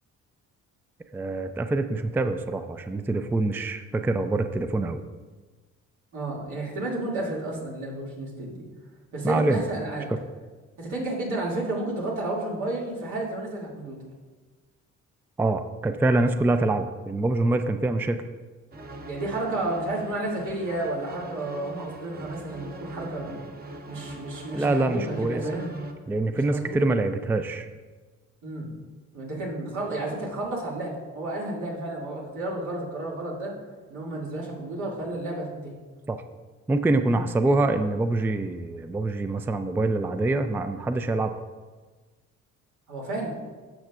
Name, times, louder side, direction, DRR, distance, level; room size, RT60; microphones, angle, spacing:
voice 1, 1.1-5.0 9.2-9.6 15.4-18.2 24.5-25.4 26.1-27.7 36.1-36.2 36.7-41.4, right 2 dB, 5° right, 9 dB, 0.3 m, -25 dB
voice 2, 6.1-8.7 9.1-10.1 10.8-14.0 19.0-23.4 23.9-25.7 26.3-26.8 28.4-28.7 29.1-33.5 33.9-35.7 37.1-37.2 42.9-43.3, right 2 dB, 80° right, -4 dB, 2.4 m, -31 dB
sound 1, 18.7-25.9, right 1 dB, 30° right, 0.9 m, -41 dB
12.0 x 6.5 x 2.4 m, 1.4 s
cardioid pair, 90°, 30 cm